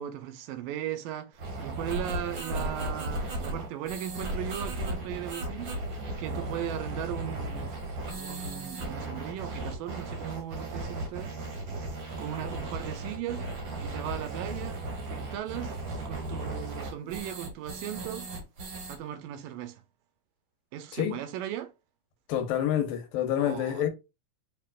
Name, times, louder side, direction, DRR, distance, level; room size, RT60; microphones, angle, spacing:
voice 1, 0.0-5.7 6.1-7.7 8.2-11.3 12.2-13.5 13.8-14.8 15.1-15.8 16.1-18.3 18.9-19.8 20.7-21.7 23.4-23.9, right 11 dB, 80° right, 2.2 m, -37 dB
sound 1, 1.4-19.0, right 2 dB, 55° right, 1.4 m, -36 dB
voice 2, 22.3-23.9, left 10 dB, 85° left, 2.6 m, -27 dB
6.7 x 3.3 x 2.4 m
omnidirectional pair, 4.0 m